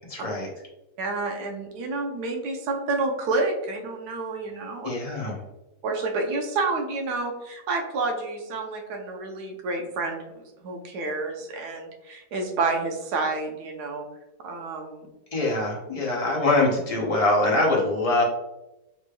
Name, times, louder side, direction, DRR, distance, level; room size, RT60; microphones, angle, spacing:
voice 1, 0.1-0.5 4.8-5.4 15.3-18.2, left 2 dB, 35° left, -3 dB, 0.6 m, -23 dB
voice 2, 1.0-4.9 5.8-14.1 14.4-15.1, right 3 dB, 80° right, 3 dB, 1.2 m, -29 dB
4.2 x 3.2 x 2.2 m, 0.95 s
omnidirectional pair, 1.7 m